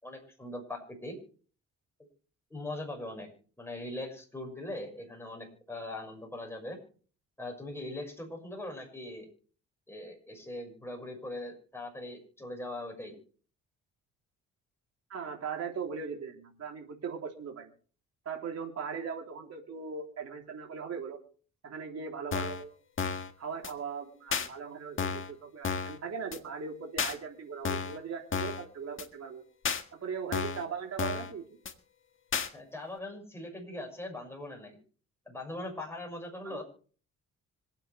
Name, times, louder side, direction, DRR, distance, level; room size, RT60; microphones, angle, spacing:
voice 1, 0.0-1.2 2.5-3.3 3.6-6.8 7.4-9.3 9.9-13.2 32.5-34.8 35.3-36.6, left 1 dB, 10° left, 1 dB, 6.2 m, -41 dB
voice 2, 15.1-17.7 18.3-21.2 21.6-22.7 23.4-29.4 29.9-31.6 36.4-36.6, right 6 dB, 55° right, 1 dB, 3.6 m, -39 dB
sound 1, 22.3-22.6 23.0-23.3 23.6-23.7 24.3-24.5 25.0-25.3 25.6-26.0 26.3-26.4 27.0-27.2 27.7-28.0 28.3-28.6 29.0-29.1 29.7-29.8 30.3-30.7 31.0-31.3 31.7-31.8 32.3-32.5, left 6 dB, 40° left, 1.8 m, -32 dB
25.5 x 9.0 x 3.4 m, 0.41 s
cardioid pair, 90°, 30 cm